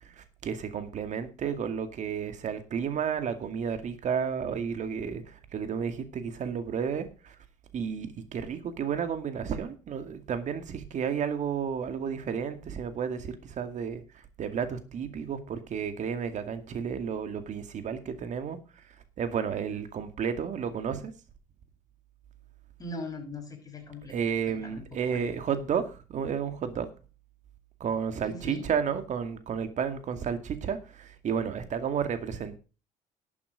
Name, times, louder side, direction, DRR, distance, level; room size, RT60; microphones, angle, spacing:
voice 1, 0.2-7.3 7.7-14.0 14.4-18.6 19.2-21.1 24.1-26.9 27.8-32.6, right 7 dB, 55° right, 9 dB, 2.2 m, -32 dB
voice 2, 22.8-24.2 24.5-25.3 28.3-28.7, left 2 dB, 25° left, 1 dB, 6.5 m, -40 dB
12.0 x 8.6 x 5.2 m, 0.33 s
cardioid pair, 90°, 15 cm